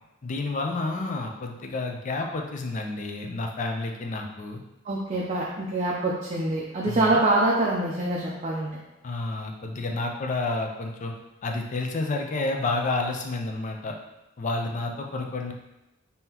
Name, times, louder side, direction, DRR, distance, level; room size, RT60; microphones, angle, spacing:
voice 1, 0.2-4.6 6.8-7.2 9.0-11.1 11.4-14.0 14.4-15.5, left 2 dB, 40° left, 2 dB, 0.4 m, -30 dB
voice 2, 4.9-8.7, right 2 dB, 35° right, -3 dB, 0.4 m, -25 dB
3.7 x 2.7 x 2.8 m, 0.96 s
head